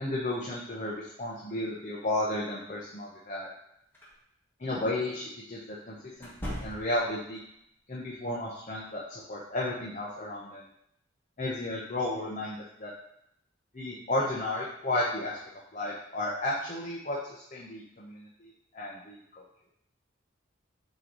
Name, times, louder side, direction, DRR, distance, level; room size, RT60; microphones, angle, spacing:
voice 1, 0.0-3.5 4.6-7.4 7.9-10.6 11.4-12.9 13.7-15.4 15.7-19.2, left 1 dB, 40° left, -5 dB, 1.0 m, -33 dB
sound 1, 3.9-4.1 6.2-7.2, equal, 10° left, 1.5 m, -39 dB
8.2 x 3.1 x 4.0 m, 0.75 s
head